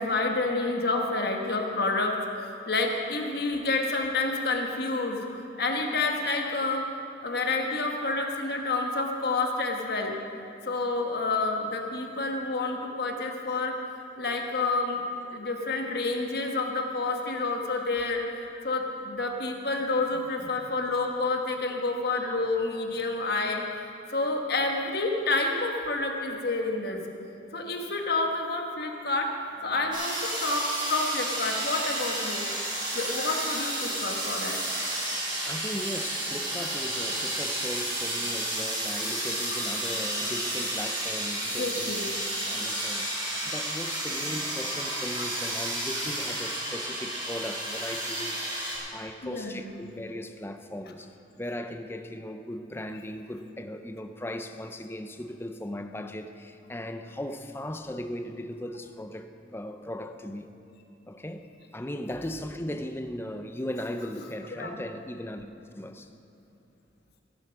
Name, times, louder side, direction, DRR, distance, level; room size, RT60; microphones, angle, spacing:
voice 1, 0.0-2.2 2.7-6.8 7.2-10.1 10.6-13.7 14.2-15.0 15.3-18.2 18.5-23.6 24.1-27.0 27.5-29.3 29.6-32.5 32.9-34.6 39.5-39.7 41.5-42.0 45.2-45.3 45.9-46.0 48.6-48.7 49.2-49.8 64.6-64.7, left 3 dB, 55° left, 2 dB, 1.3 m, -29 dB
sound 1, 29.9-48.8, right 1 dB, 25° right, 3.6 m, -31 dB
voice 2, 35.5-42.0 42.5-48.6 48.9-60.5 61.1-61.5 61.7-66.1, left 1 dB, 10° left, 7 dB, 0.5 m, -38 dB
15.5 x 8.5 x 5.9 m, 2.8 s
head